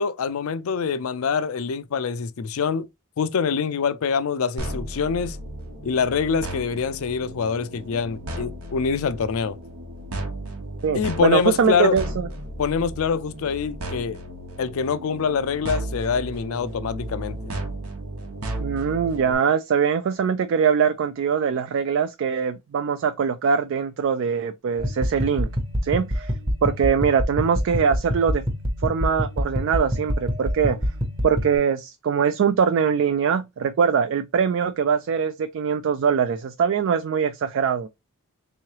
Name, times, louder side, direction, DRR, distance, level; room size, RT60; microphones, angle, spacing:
voice 1, 0.0-2.9 3.2-5.4 5.8-9.6 10.9-12.0 12.6-14.2 14.6-17.5, left 6 dB, 70° left, 0.4 m, -25 dB
sound 1, 4.6-19.3, right 1 dB, 85° right, 1.0 m, -34 dB
voice 2, 10.8-12.3 18.6-25.5 25.8-26.3 26.6-28.4 28.8-30.8 31.2-37.9, right 6 dB, 60° right, 0.3 m, -22 dB
sound 2, 24.8-31.6, equal, 20° right, 0.8 m, -26 dB
3.6 x 3.1 x 2.9 m
head